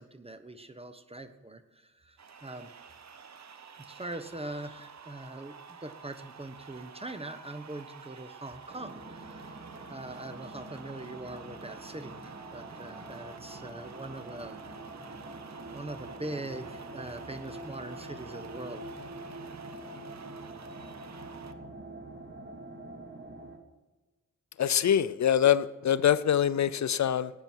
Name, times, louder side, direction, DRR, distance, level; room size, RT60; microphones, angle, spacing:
voice 1, 0.0-2.7 3.8-5.6 5.8-9.4 9.9-14.6 15.7-18.9, right 2 dB, 20° right, 1.1 m, -42 dB
sound 1, 2.2-21.5, right 6 dB, 55° right, 1.0 m, -50 dB
sound 2, 8.7-23.6, right 2 dB, 35° right, 2.0 m, -45 dB
voice 2, 24.6-27.3, left 9 dB, 60° left, 0.5 m, -24 dB
18.0 x 9.2 x 4.6 m
cardioid pair, 65°, 32 cm